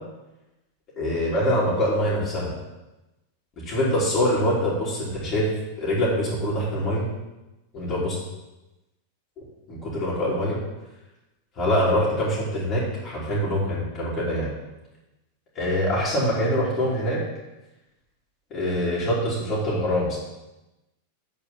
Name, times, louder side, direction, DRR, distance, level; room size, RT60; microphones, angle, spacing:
voice 1, 1.0-2.5 3.6-5.5 5.8-7.1 7.7-8.1 9.7-10.6 11.6-14.5 15.6-17.2 18.5-20.2, equal, 35° left, -9 dB, 3.6 m, -24 dB
8.5 x 4.9 x 7.3 m, 1.0 s
figure-of-eight pair, 90°, 0 cm